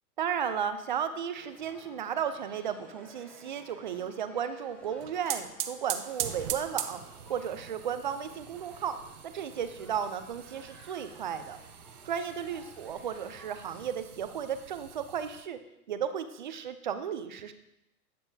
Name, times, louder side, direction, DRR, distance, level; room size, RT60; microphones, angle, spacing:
voice 1, 0.2-7.0 7.3-9.0 9.2-11.6 12.0-15.6 15.9-17.5, right 8 dB, 35° right, 10 dB, 0.4 m, -34 dB
sound 1, 1.3-13.9, equal, 5° left, 0.9 m, -55 dB
sound 2, 4.8-15.4, right 10 dB, 70° right, 0.9 m, -41 dB
12.0 x 6.8 x 2.7 m, 0.87 s
hypercardioid pair, 145°, 47 cm